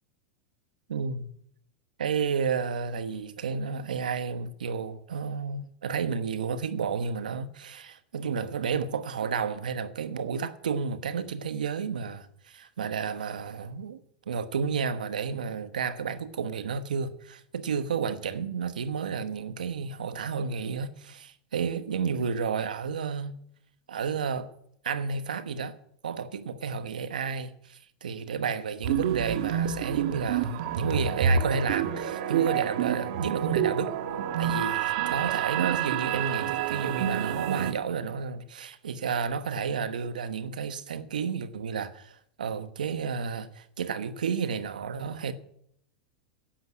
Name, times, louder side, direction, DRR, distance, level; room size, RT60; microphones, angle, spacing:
voice 1, 0.9-1.3 2.0-14.0 14.3-23.4 23.9-24.5 24.8-25.7 26.0-33.9 34.4-45.3, right 6 dB, 90° right, 1.1 m, -31 dB
sound 1, 28.8-37.7, right 8 dB, 65° right, 1.3 m, -28 dB
10.0 x 7.9 x 9.6 m
hypercardioid pair, 115°, 4 cm